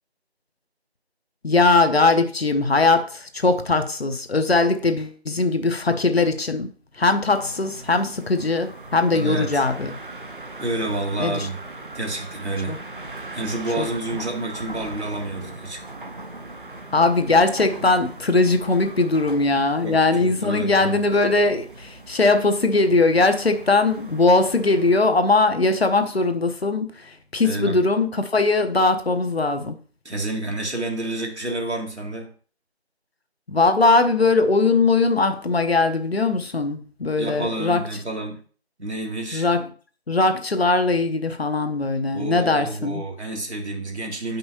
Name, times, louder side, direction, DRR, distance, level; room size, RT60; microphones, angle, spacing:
voice 1, 1.4-6.7 7.0-10.0 11.2-11.5 12.7-12.8 13.8-13.9 16.9-26.9 27.3-29.8 33.5-37.8 39.3-39.7 40.1-43.0, left 3 dB, 65° left, 0.8 m, -20 dB
sound 1, 7.3-25.0, right 2 dB, 50° right, 0.6 m, -39 dB
voice 2, 9.1-9.6 10.6-11.6 11.9-12.8 13.3-15.8 19.8-21.0 27.4-27.8 30.0-32.3 37.1-38.4 38.8-39.5 42.1-44.4, right 2 dB, 85° right, 1.7 m, -29 dB
7.7 x 5.4 x 2.7 m
figure-of-eight pair, 170°, 33 cm